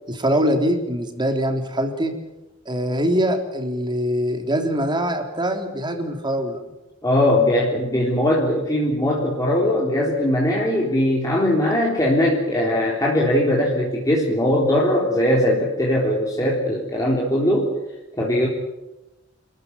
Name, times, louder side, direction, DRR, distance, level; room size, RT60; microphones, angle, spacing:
voice 1, 0.1-2.1 2.7-6.6, equal, 25° right, 4 dB, 3.6 m, -23 dB
voice 2, 7.0-17.7 18.2-18.5, left 1 dB, 15° left, -4 dB, 3.8 m, -20 dB
29.0 x 14.5 x 10.0 m, 1.0 s
head